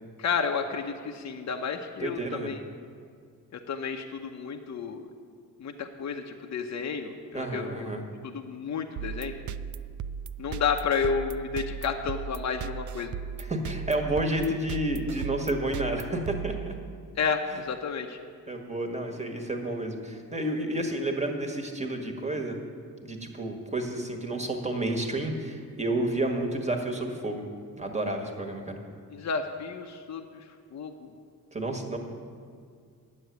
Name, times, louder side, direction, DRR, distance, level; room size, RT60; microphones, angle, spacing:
voice 1, 0.2-2.6 3.5-5.1 5.6-7.9 8.2-9.3 10.4-13.2 17.2-18.2 29.1-30.4 30.7-31.1, left 6 dB, 50° left, 4 dB, 0.8 m, -31 dB
voice 2, 2.0-2.5 7.3-8.0 13.4-16.7 17.5-17.6 18.5-22.6 23.0-27.4 27.8-28.8 31.5-32.0, right 1 dB, 20° right, 3 dB, 1.6 m, -30 dB
sound 1, 9.0-17.1, right 7 dB, 60° right, 0.4 m, -37 dB
9.6 x 7.4 x 9.3 m, 2.2 s
cardioid pair, 100°, 35 cm